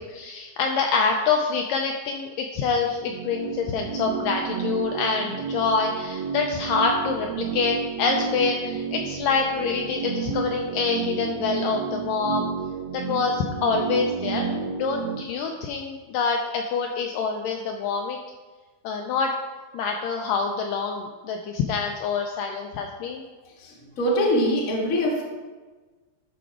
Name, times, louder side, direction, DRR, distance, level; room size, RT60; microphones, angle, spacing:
voice 1, 0.0-12.5 12.9-14.5 14.8-18.2 18.8-19.3 19.7-23.2, left 5 dB, 85° left, 2 dB, 2.0 m, -26 dB
sound 1, 2.7-15.2, right 6 dB, 85° right, 2.4 m, -31 dB
voice 2, 23.4-25.2, equal, 45° left, -2 dB, 1.0 m, -24 dB
11.0 x 5.0 x 4.8 m, 1.3 s
omnidirectional pair, 4.4 m